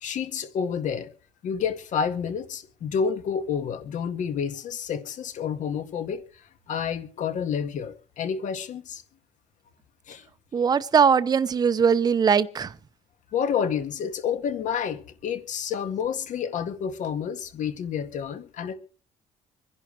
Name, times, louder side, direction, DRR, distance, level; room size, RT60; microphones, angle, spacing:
voice 1, 0.0-1.1 1.4-6.2 6.7-9.0 10.1-10.2 13.3-18.7, left 7 dB, 55° left, 1.8 m, -29 dB
voice 2, 10.5-12.7, right 6 dB, 25° right, 0.8 m, -20 dB
26.0 x 11.0 x 3.3 m
cardioid pair, 135°, 15 cm